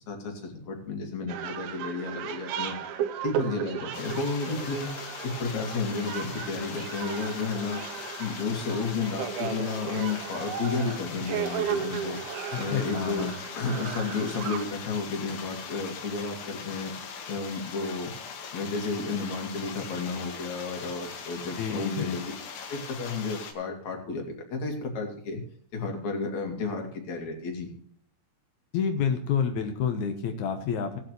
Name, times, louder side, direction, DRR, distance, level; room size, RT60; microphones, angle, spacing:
voice 1, 0.1-2.7 3.2-4.9 5.2-7.8 8.2-12.2 12.6-13.3 13.5-16.9 17.3-18.1 18.5-22.3 22.7-25.4 25.7-27.7, left 4 dB, 45° left, 2 dB, 3.1 m, -32 dB
sound 1, 1.3-14.6, right 9 dB, 75° right, 2.3 m, -35 dB
sound 2, 3.9-23.5, left 6 dB, 70° left, 3.4 m, -41 dB
voice 2, 12.5-13.3 21.6-22.2 28.7-31.0, left 7 dB, 85° left, 5 dB, 1.6 m, -28 dB
18.5 x 8.5 x 3.3 m, 0.62 s
omnidirectional pair, 5.3 m